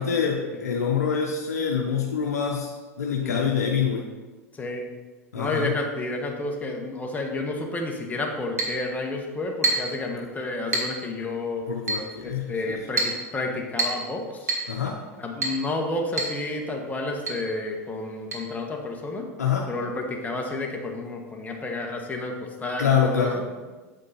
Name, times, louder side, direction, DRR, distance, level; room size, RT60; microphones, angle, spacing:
voice 1, 0.0-2.7 3.0-4.0 5.3-5.7 11.7-12.8 14.7-15.0 19.4-19.7 22.8-23.4, left 7 dB, 85° left, 0 dB, 0.8 m, -25 dB
voice 2, 3.2-3.6 4.5-4.9 5.3-11.7 12.2-14.5 15.2-19.3 19.7-22.3 22.6-23.4, left 2 dB, 20° left, 2 dB, 1.4 m, -30 dB
Chink clink, 8.6-8.8 9.6-10.0 10.7-11.0 11.9-12.1 13.0-13.2 13.8-14.1 14.5-14.7 15.4-15.6 16.2-16.4 16.6-16.7 17.3-17.4 18.3-18.4, right 2 dB, 85° right, 1.8 m, -26 dB
7.9 x 5.2 x 4.3 m, 1.3 s
hypercardioid pair, 90°, 8 cm